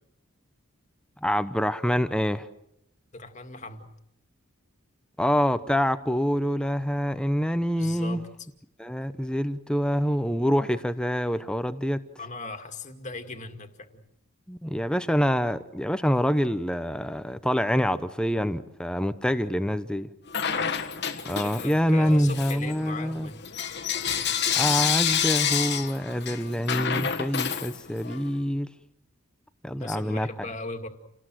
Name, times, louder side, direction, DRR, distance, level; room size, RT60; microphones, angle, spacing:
voice 1, 1.2-2.5 5.2-8.2 8.8-12.0 14.5-20.1 21.3-23.3 24.6-28.7 29.6-30.3, equal, 5° left, 0.9 m, -26 dB
voice 2, 3.1-3.9 7.7-8.2 12.2-14.0 21.3-23.4 29.7-30.9, left 3 dB, 35° left, 2.2 m, -38 dB
Bell / Coin (dropping), 20.3-21.8 22.2-28.2, left 8 dB, 50° left, 1.5 m, -28 dB
29.0 x 19.5 x 7.7 m
head